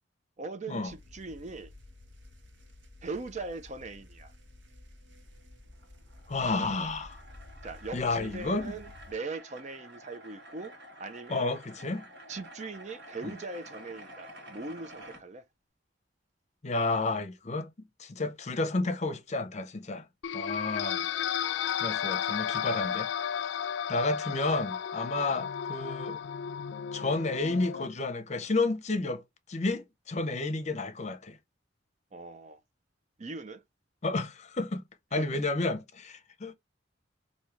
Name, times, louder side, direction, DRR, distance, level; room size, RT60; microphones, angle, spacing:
voice 1, 0.4-1.7 3.0-4.3 7.6-11.5 12.3-15.5 25.1-25.4 32.1-32.6 33.2-33.6 35.1-35.4, right 3 dB, 40° right, 0.5 m, -40 dB
sound 1, 0.9-9.1, left 2 dB, 85° right, 1.3 m, -52 dB
sound 2, 5.7-15.2, right 1 dB, 60° right, 1.6 m, -50 dB
voice 2, 6.3-7.2 7.9-8.7 11.3-12.0 16.6-17.7 18.0-20.0 20.3-21.1 21.8-23.1 23.9-26.2 26.9-29.2 29.5-31.4 34.0-34.8 35.1-36.5, left 3 dB, 40° left, 0.7 m, -31 dB
sound 3, 20.2-27.9, left 8 dB, 70° left, 0.3 m, -33 dB
4.7 x 2.7 x 2.8 m
head